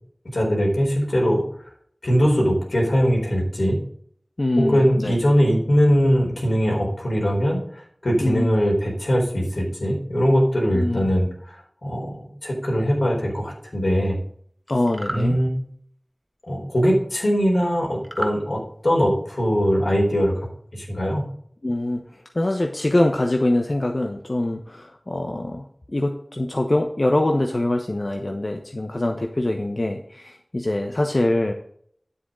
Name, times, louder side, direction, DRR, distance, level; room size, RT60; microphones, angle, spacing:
voice 1, 0.3-1.4 2.0-3.8 4.6-7.6 8.0-11.6 11.8-14.2 15.1-15.5 16.5-20.3 20.7-21.2, equal, 90° left, -2 dB, 4.1 m, -21 dB
voice 2, 4.4-5.2 8.2-8.5 10.7-11.0 14.7-15.4 21.6-31.5, left 1 dB, 55° left, 3 dB, 1.0 m, -24 dB
sound 1, 14.8-15.3 18.0-18.4, right 1 dB, 30° right, 1.3 m, -30 dB
9.9 x 8.1 x 3.8 m, 0.63 s
wide cardioid pair, 45°, 0 cm